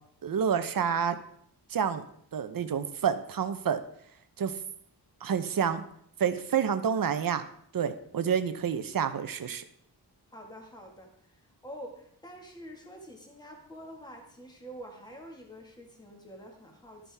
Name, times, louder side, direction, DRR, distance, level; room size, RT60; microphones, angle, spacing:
voice 1, 0.2-1.2 1.7-2.0 2.3-3.8 4.4-4.5 5.2-5.8 6.2-7.4 7.7-9.6, right 7 dB, 55° right, 10 dB, 0.8 m, -28 dB
voice 2, 10.3-17.1, equal, 10° left, 2 dB, 1.7 m, -47 dB
12.5 x 9.8 x 3.5 m, 0.68 s
wide cardioid pair, 170°, 41 cm